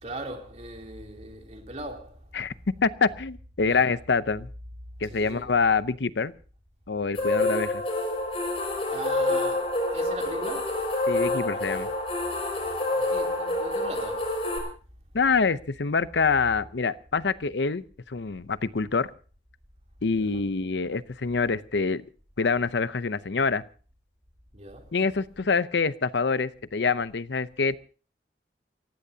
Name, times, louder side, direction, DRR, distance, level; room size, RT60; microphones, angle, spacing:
voice 1, 0.0-2.2 3.6-3.9 5.1-5.5 8.8-10.8 12.9-14.3 20.1-20.4 24.5-24.9, right 1 dB, 40° right, 3.1 m, -39 dB
voice 2, 2.8-4.5 5.0-6.3 6.9-7.8 11.1-11.9 15.1-19.1 20.0-22.0 22.4-23.6 24.9-27.8, left 4 dB, 80° left, 0.7 m, -26 dB
sound 1, 7.1-14.6, left 2 dB, 35° left, 5.6 m, -27 dB
29.5 x 15.0 x 2.8 m
head